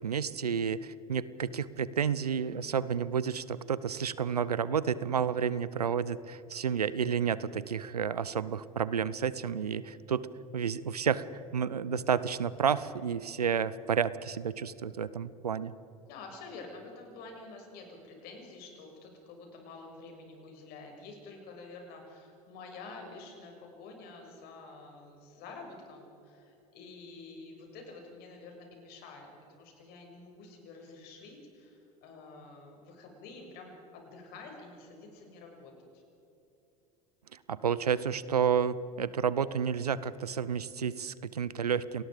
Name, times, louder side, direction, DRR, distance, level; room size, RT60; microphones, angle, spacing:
voice 1, 0.0-10.3 10.5-11.3 11.5-15.7 37.5-42.0, right 7 dB, 90° right, 18 dB, 0.8 m, -30 dB
voice 2, 16.0-29.3 29.6-36.0, left 3 dB, 55° left, 2 dB, 6.8 m, -48 dB
28.0 x 20.0 x 5.1 m, 3.0 s
hypercardioid pair, 80°, 19 cm